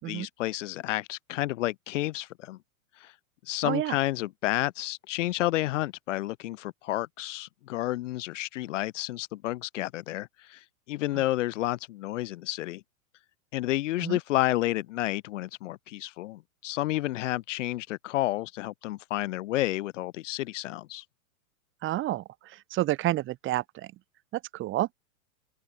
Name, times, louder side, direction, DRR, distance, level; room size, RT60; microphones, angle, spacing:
voice 1, 0.0-2.6 3.0-3.1 3.4-12.8 13.5-21.0, left 16 dB, 60° left, 1.1 m, -30 dB
voice 2, 3.6-4.0 14.0-14.2 21.8-22.2 22.5-23.9 24.3-24.9, right 15 dB, 30° right, 3.6 m, -29 dB
open air
hypercardioid pair, 145°, 42 cm